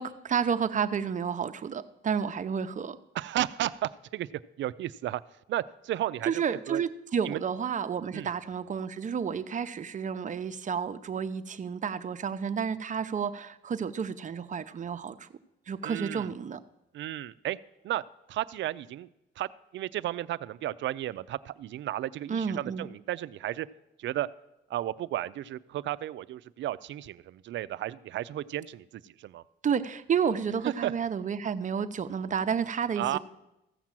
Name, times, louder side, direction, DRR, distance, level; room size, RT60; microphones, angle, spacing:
voice 1, 0.0-3.0 6.2-15.3 15.7-16.6 22.3-22.9 29.6-33.2, right 7 dB, 40° right, 10 dB, 0.7 m, -31 dB
voice 2, 3.1-4.3 4.6-5.2 5.5-6.8 7.2-7.4 8.1-8.3 15.8-16.3 16.9-17.6 17.8-18.0 18.3-19.1 19.4-19.5 19.7-23.7 24.0-24.3 24.7-29.4 30.6-30.9 33.0-33.2, right 13 dB, 70° right, 16 dB, 0.5 m, -33 dB
15.0 x 6.0 x 7.5 m, 0.91 s
cardioid pair, 90°, 20 cm